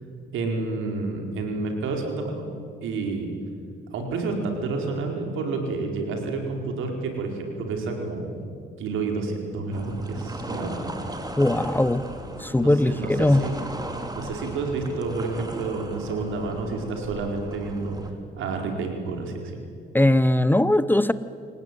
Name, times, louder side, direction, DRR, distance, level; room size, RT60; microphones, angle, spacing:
voice 1, 0.3-2.4 2.8-3.3 3.9-8.5 8.8-10.8 12.6-13.6 14.1-18.0 18.3-19.5, right 3 dB, 85° right, 3 dB, 4.7 m, -29 dB
sound 1, 9.7-18.1, right 1 dB, 20° right, 3.2 m, -37 dB
voice 2, 11.4-12.1 12.4-13.5 19.9-21.1, left 1 dB, 10° left, 15 dB, 0.8 m, -20 dB
27.0 x 17.5 x 9.4 m, 2.3 s
cardioid pair, 90°, 20 cm